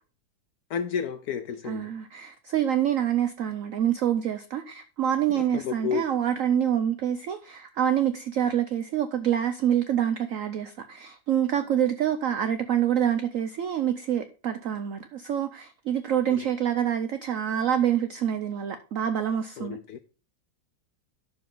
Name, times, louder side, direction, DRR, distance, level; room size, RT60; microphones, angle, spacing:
voice 1, 0.7-1.9 5.5-6.0 19.6-20.0, left 7 dB, 70° left, 0.9 m, -31 dB
voice 2, 1.6-19.8, right 10 dB, 60° right, 0.8 m, -26 dB
11.0 x 7.2 x 3.8 m
omnidirectional pair, 2.0 m